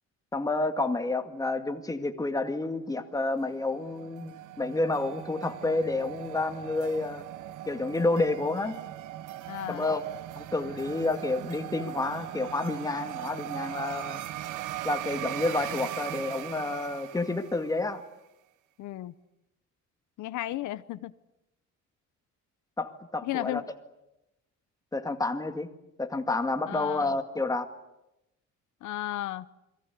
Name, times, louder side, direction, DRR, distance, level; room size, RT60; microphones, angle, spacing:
voice 1, 0.3-7.3 7.7-8.8 9.7-10.0 10.4-14.2 14.8-18.0 22.8-23.6 24.9-25.7 26.0-27.7, left 2 dB, 10° left, 7 dB, 2.0 m, -29 dB
sound 1, 3.3-17.9, right 13 dB, 90° right, 1.2 m, -39 dB
voice 2, 9.5-9.9 18.8-19.1 20.2-21.1 23.2-23.6 26.7-27.1 28.8-29.5, left 15 dB, 80° left, 14 dB, 1.0 m, -34 dB
28.5 x 23.0 x 8.4 m, 0.90 s
cardioid pair, 155°, 30 cm